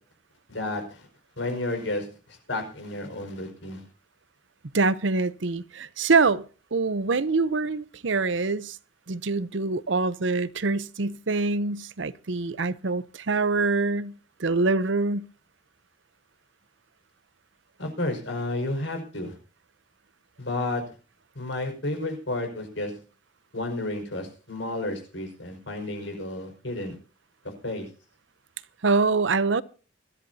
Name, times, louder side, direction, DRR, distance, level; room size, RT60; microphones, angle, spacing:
voice 1, 0.5-1.1 1.4-3.9 17.8-19.4 20.4-20.8 21.4-22.9 23.5-27.0 27.4-27.9, left 2 dB, 75° left, 5.3 m, -32 dB
voice 2, 4.7-6.4 6.7-8.8 9.1-15.3 28.8-29.6, right 3 dB, 75° right, 0.8 m, -25 dB
21.5 x 13.5 x 2.8 m
head